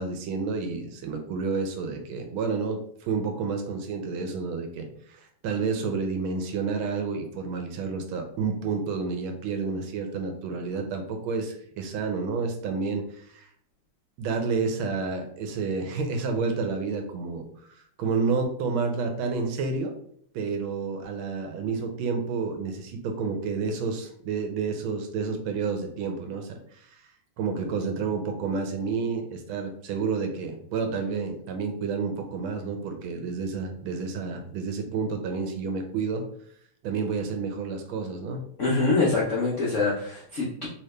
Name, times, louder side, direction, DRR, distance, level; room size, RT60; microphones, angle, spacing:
voice 1, 0.0-13.5 14.2-17.4 18.0-19.9 20.3-27.0 27.4-36.2 36.8-38.4, right 4 dB, 75° right, 5 dB, 1.4 m, -30 dB
voice 2, 38.6-40.7, left 3 dB, 80° left, -4 dB, 0.6 m, -24 dB
3.3 x 2.8 x 3.2 m, 0.63 s
omnidirectional pair, 2.4 m